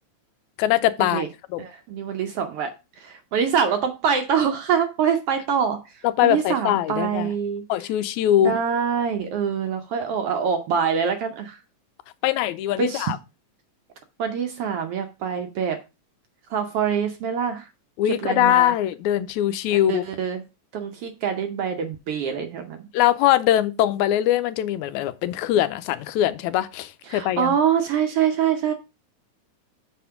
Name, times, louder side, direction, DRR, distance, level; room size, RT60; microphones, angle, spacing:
voice 1, 0.6-1.6 6.0-7.3 7.7-8.5 12.2-13.2 18.0-20.0 22.9-27.6, left 12 dB, 85° left, 2.0 m, -22 dB
voice 2, 1.6-2.7 3.0-5.8 6.2-7.6 8.4-11.6 12.8-13.1 14.2-15.8 16.5-17.6 18.2-18.7 19.9-20.4 20.7-22.8 27.1-28.7, right 7 dB, 70° right, 1.5 m, -24 dB
7.3 x 4.3 x 5.6 m
omnidirectional pair, 3.3 m